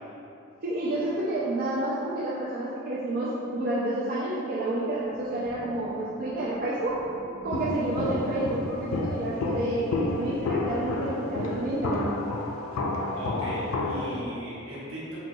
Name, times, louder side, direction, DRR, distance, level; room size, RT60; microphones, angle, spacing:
voice 1, 0.6-7.0 7.4-12.2, right 1 dB, 45° right, -8 dB, 0.4 m, -29 dB
sound 1, 5.0-12.0, equal, 20° left, 0.7 m, -44 dB
Walk footsteps, 7.5-14.2, left 2 dB, 85° left, 0.3 m, -30 dB
voice 2, 13.1-15.2, equal, 75° right, -8 dB, 1.0 m, -37 dB
3.8 x 2.2 x 2.6 m, 2.6 s
head